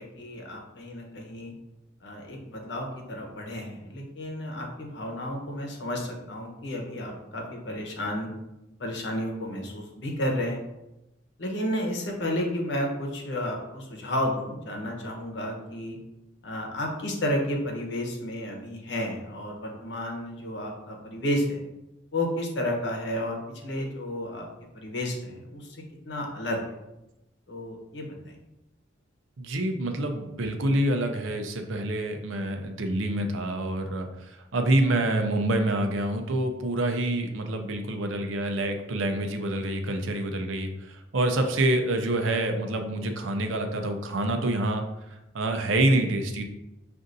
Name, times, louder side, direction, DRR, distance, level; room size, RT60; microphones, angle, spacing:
voice 1, 0.0-1.5 2.0-8.3 8.8-10.6 11.4-16.0 16.4-21.6 22.1-24.5 24.7-26.6 27.5-28.3, left 1 dB, 60° left, 0 dB, 0.9 m, -32 dB
voice 2, 29.4-44.8 45.1-46.4, right 1 dB, 80° right, 5 dB, 0.6 m, -27 dB
6.2 x 2.6 x 2.6 m, 0.95 s
head